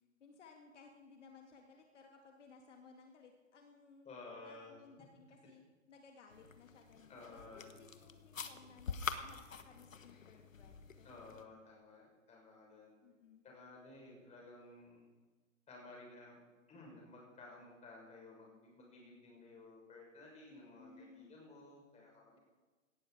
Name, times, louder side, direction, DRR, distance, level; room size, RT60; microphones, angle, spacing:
voice 1, 0.2-4.1 4.4-11.1 13.0-13.4 20.5-21.4, left 4 dB, 65° left, 3 dB, 2.3 m, -60 dB
voice 2, 4.0-4.8 7.1-7.8 11.0-12.9 13.4-15.0 15.7-16.4 16.7-22.4, left 2 dB, 15° left, -2 dB, 6.2 m, -55 dB
sound 1, 6.3-11.4, left 5 dB, 85° left, 1.3 m, -46 dB
17.5 x 13.0 x 5.0 m, 1.3 s
hypercardioid pair, 125°, 39 cm